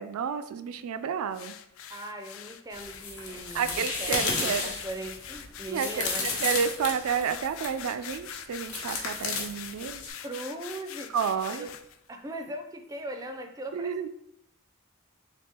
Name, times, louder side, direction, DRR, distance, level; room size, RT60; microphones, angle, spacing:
voice 1, 0.0-1.5 3.5-4.7 5.7-10.0 11.1-11.7 13.7-14.1, right 7 dB, 85° right, 10 dB, 0.3 m, -30 dB
sound 1, 1.3-12.0, left 9 dB, 70° left, 0.4 m, -44 dB
voice 2, 1.9-6.3 10.2-11.7 12.1-14.1, right 1 dB, 15° right, 5 dB, 0.4 m, -39 dB
sound 2, 2.7-7.8 8.7-10.1, left 4 dB, 85° left, 1.1 m, -33 dB
3.5 x 3.5 x 4.3 m, 0.79 s
head